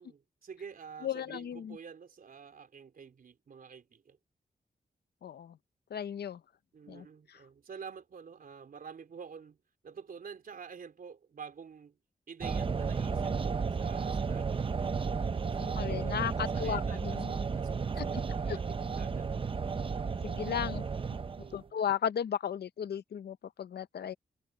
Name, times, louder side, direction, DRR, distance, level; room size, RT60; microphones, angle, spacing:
voice 1, 0.0-4.2 6.7-9.6 9.8-12.0 12.3-15.0 15.4-19.5 21.3-21.8 24.0-24.1, right 6 dB, 60° right, 3.7 m, -49 dB
voice 2, 1.0-1.8 5.2-5.6 5.9-6.4 6.9-7.1 15.8-17.3 18.0-18.1 18.5-18.6 20.2-20.9 21.5-24.1, left 8 dB, 85° left, 0.7 m, -35 dB
sound 1, 12.4-21.6, right 5 dB, 30° right, 0.7 m, -33 dB
wide cardioid pair, 165°, 17 cm